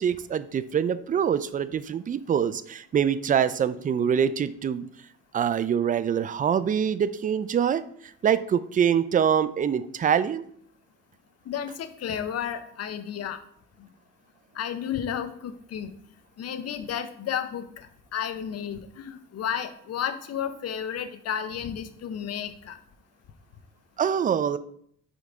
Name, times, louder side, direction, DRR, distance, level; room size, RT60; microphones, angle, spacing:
voice 1, 0.0-4.9 5.3-10.4 24.0-24.6, right 8 dB, 30° right, 15 dB, 0.3 m, -25 dB
voice 2, 11.5-13.4 14.5-15.9 16.4-22.8, left 8 dB, 55° left, 10 dB, 0.7 m, -32 dB
5.1 x 4.8 x 3.9 m, 0.65 s
cardioid pair, 90°, 30 cm